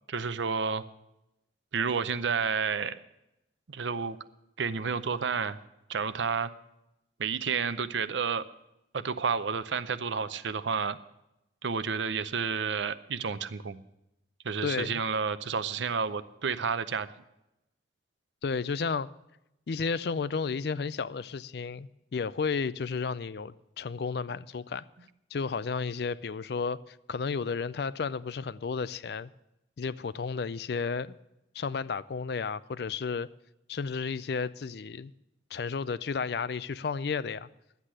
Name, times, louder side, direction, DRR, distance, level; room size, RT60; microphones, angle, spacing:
voice 1, 0.1-0.8 1.7-3.0 3.7-4.2 4.6-5.6 5.9-6.5 7.2-8.4 8.9-11.0 11.6-13.8 14.4-17.1, right 5 dB, 85° right, 0.6 m, -30 dB
voice 2, 14.6-15.0 18.4-19.1 19.7-24.8 25.3-29.3 29.8-31.2 31.5-33.3 33.7-35.1 35.5-37.5, left 5 dB, 60° left, 0.4 m, -32 dB
12.0 x 8.2 x 7.4 m
head